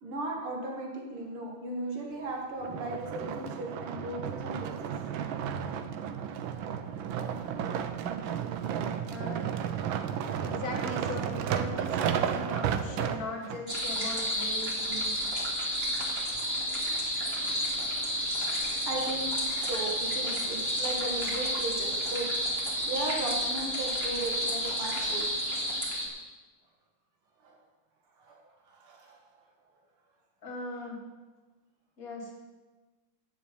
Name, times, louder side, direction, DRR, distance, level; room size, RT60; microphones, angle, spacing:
voice 1, 0.0-4.9 15.6-15.7 16.9-22.3 22.9-25.2 27.4-27.5 28.2-28.4 28.7-29.2, right 2 dB, 90° right, -1 dB, 2.6 m, -37 dB
sound 1, 2.6-13.6 14.3-14.4, right 8 dB, 75° right, 1.4 m, -33 dB
voice 2, 9.1-9.7 10.4-15.2 30.4-31.0 32.0-32.3, left 2 dB, 45° left, 1 dB, 2.7 m, -39 dB
sound 2, 13.7-26.1, equal, 30° right, 2.5 m, -31 dB
9.3 x 7.3 x 8.4 m, 1.2 s
omnidirectional pair, 2.3 m